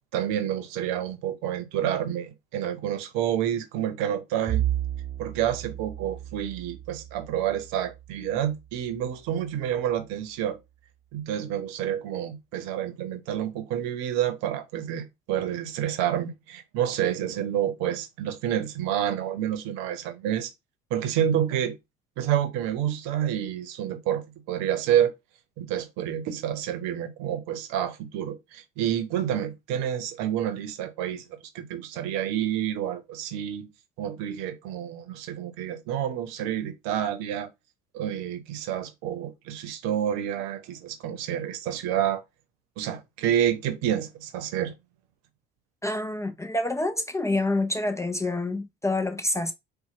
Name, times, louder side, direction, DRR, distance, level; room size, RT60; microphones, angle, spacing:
voice 1, 0.1-4.6 5.2-10.6 11.1-20.5 20.9-21.7 22.2-25.1 25.6-31.2 31.5-33.7 34.0-37.5 37.9-42.2 42.8-44.7, right 10 dB, 65° right, 0.8 m, -29 dB
Bowed string instrument, 4.5-9.1, right 11 dB, 15° right, 1.8 m, -33 dB
voice 2, 45.8-49.5, left 2 dB, 10° left, 0.5 m, -27 dB
4.1 x 2.2 x 2.8 m
hypercardioid pair, 65°, 29 cm